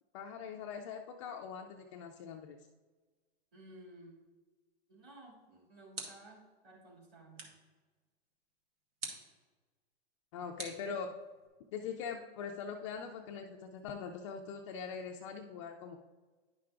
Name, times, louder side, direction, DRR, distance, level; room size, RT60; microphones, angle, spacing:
voice 1, 0.1-2.6 10.3-11.2 11.7-16.0, left 6 dB, 30° left, 2 dB, 0.4 m, -42 dB
voice 2, 3.5-4.3 4.9-7.5, right 1 dB, 30° right, -4 dB, 2.3 m, -55 dB
sound 1, 5.3-6.5 7.4-7.7 9.0-9.4 10.6-11.5, right 3 dB, 65° right, 1.7 m, -46 dB
10.5 x 5.7 x 2.5 m, 1.3 s
hypercardioid pair, 140°, 32 cm